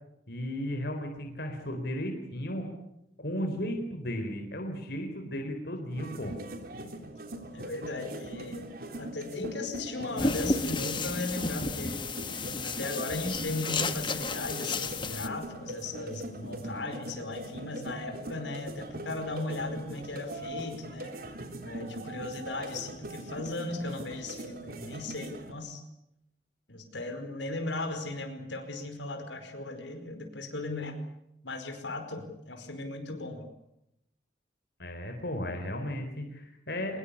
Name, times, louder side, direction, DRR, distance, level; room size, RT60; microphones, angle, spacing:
voice 1, 0.3-2.7 3.2-6.4 34.8-37.0, equal, 60° left, 4 dB, 4.2 m, -35 dB
sound 1, 5.9-25.5, right 1 dB, 50° right, 3.4 m, -42 dB
voice 2, 7.5-8.7 9.0-12.0 12.6-21.1 21.6-25.8 26.7-31.0 31.4-33.4, left 2 dB, 80° left, 6 dB, 5.0 m, -37 dB
sound 2, 10.2-15.3, left 3 dB, 25° left, 1.5 m, -32 dB
24.5 x 21.5 x 8.6 m, 0.83 s
head